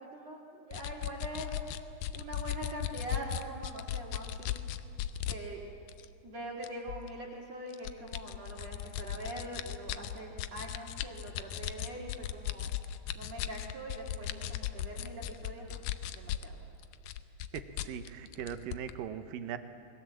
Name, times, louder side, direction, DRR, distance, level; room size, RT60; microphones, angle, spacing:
voice 1, 0.0-1.5 2.1-4.6 5.3-5.7 6.2-12.7 13.1-15.8 16.1-16.5, right 1 dB, 50° right, -4 dB, 2.8 m, -43 dB
sound 1, 0.7-5.4 5.9-6.1 6.6-7.1 7.7-16.5 16.8-18.9, left 11 dB, 80° left, 1.9 m, -37 dB
voice 2, 17.5-19.6, right 9 dB, 70° right, 9 dB, 2.4 m, -40 dB
28.0 x 20.5 x 7.5 m, 2.6 s
omnidirectional pair, 4.6 m